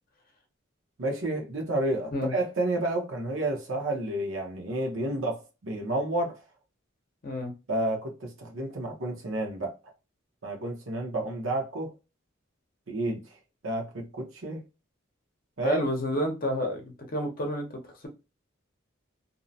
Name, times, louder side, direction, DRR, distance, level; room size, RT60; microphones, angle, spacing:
voice 1, 1.0-6.4 7.7-9.8 10.4-11.9 12.9-13.3 13.6-14.6 15.6-15.9, right 1 dB, 75° right, 0.9 m, -30 dB
voice 2, 15.6-18.1, left 1 dB, 45° left, 0.7 m, -30 dB
2.7 x 2.1 x 2.6 m
head